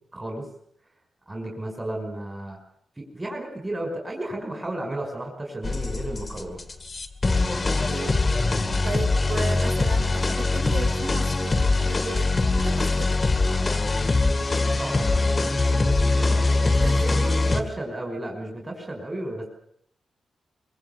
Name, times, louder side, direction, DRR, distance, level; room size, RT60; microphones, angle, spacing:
voice 1, 0.1-0.5 1.3-2.6 3.0-6.6 14.8-19.4, right 1 dB, 15° right, 2 dB, 5.6 m, -33 dB
sound 1, 5.6-17.6, left 3 dB, 20° left, 2.2 m, -22 dB
voice 2, 7.9-8.3 8.8-13.2 16.8-17.5, right 3 dB, 60° right, 1 dB, 7.7 m, -35 dB
25.0 x 24.5 x 7.0 m, 0.69 s
wide cardioid pair, 165°, 0 cm